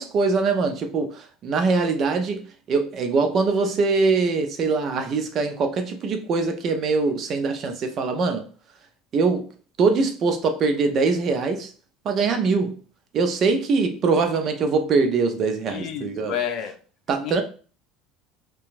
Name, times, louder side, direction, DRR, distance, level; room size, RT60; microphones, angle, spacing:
voice 1, 0.0-2.4 2.7-8.5 9.1-9.5 9.8-11.7 12.0-12.8 13.1-16.4 17.1-17.4, right 4 dB, 50° right, 0.6 m, -22 dB
voice 2, 15.7-16.7 17.2-17.4, left 9 dB, 55° left, 0.5 m, -30 dB
2.8 x 2.3 x 2.5 m
hypercardioid pair, 85°, 0 cm